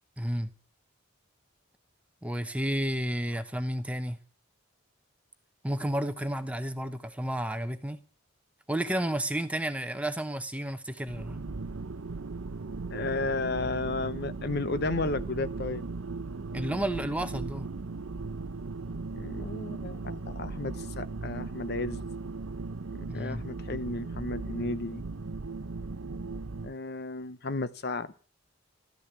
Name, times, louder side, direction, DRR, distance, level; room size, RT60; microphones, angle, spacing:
voice 1, 0.2-0.5 2.2-4.2 5.6-8.0 8.7-11.4 16.5-17.7 23.1-23.4, right 1 dB, 5° right, 0.9 m, -31 dB
sound 1, 11.1-26.7, right 3 dB, 75° right, 0.7 m, -37 dB
voice 2, 12.9-15.8 19.1-22.0 22.9-25.0 26.6-28.1, left 3 dB, 50° left, 0.8 m, -33 dB
13.5 x 13.0 x 8.1 m
head